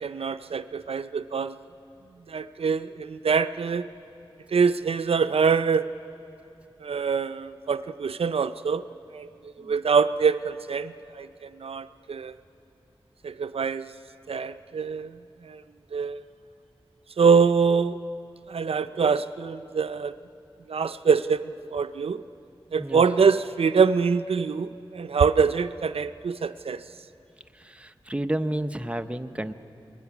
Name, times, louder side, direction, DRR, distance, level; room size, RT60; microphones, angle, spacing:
voice 1, 0.0-1.6 2.3-3.9 4.5-5.9 6.8-8.8 9.1-9.3 9.6-12.3 13.2-13.9 14.3-15.1 15.4-15.6 15.9-16.2 17.2-18.0 18.5-20.1 20.7-22.2 22.7-26.8, right 5 dB, 80° right, 11 dB, 0.4 m, -24 dB
voice 2, 27.6-29.5, right 1 dB, 10° right, 8 dB, 0.8 m, -31 dB
28.5 x 21.0 x 6.1 m, 2.7 s
wide cardioid pair, 60°, 10 cm